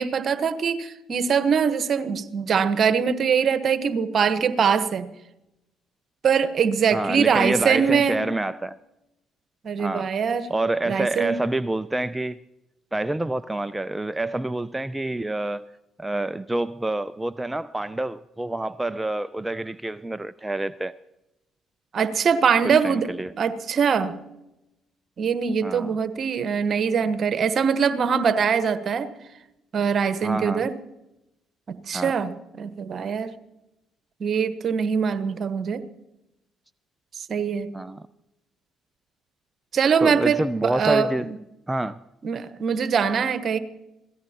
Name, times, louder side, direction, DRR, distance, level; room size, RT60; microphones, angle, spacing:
voice 1, 0.0-5.1 6.2-8.2 9.6-10.5 10.8-11.4 21.9-23.1 23.4-24.2 25.2-29.1 29.7-30.7 31.7-33.3 34.2-35.8 37.3-37.7 39.7-41.3 42.2-43.6, right 6 dB, 50° right, 1.3 m, -23 dB
voice 2, 6.9-8.8 9.8-10.1 10.5-12.4 12.9-15.7 16.0-21.0 22.8-23.3 25.6-25.9 30.2-30.7 31.9-32.1 37.7-38.1 40.0-41.3 41.7-42.0, right 2 dB, 15° right, 0.5 m, -27 dB
25.5 x 17.5 x 3.0 m
hypercardioid pair, 50°, 0 cm